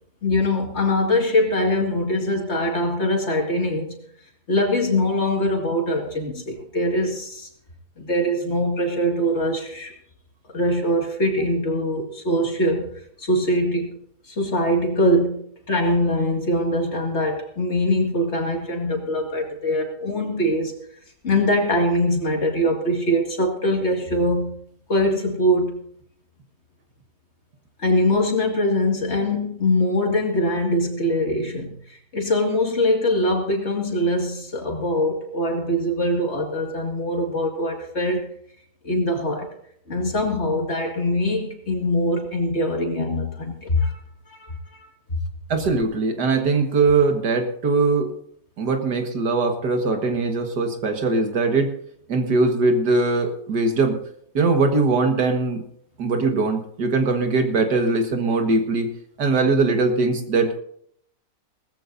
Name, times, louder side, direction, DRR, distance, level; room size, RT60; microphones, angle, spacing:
voice 1, 0.2-4.0 4.5-7.5 8.0-9.9 10.5-12.9 13.2-14.0 14.3-20.7 21.2-24.5 24.9-25.8 27.8-38.3 38.8-39.5 39.9-44.0 44.3-44.9, left 1 dB, 40° left, 2 dB, 2.5 m, -22 dB
voice 2, 45.5-48.1 48.6-51.7 52.1-54.0 54.3-55.6 56.0-58.9 59.2-60.6, right 3 dB, 75° right, 5 dB, 2.1 m, -21 dB
19.0 x 15.0 x 2.7 m, 0.66 s
omnidirectional pair, 1.8 m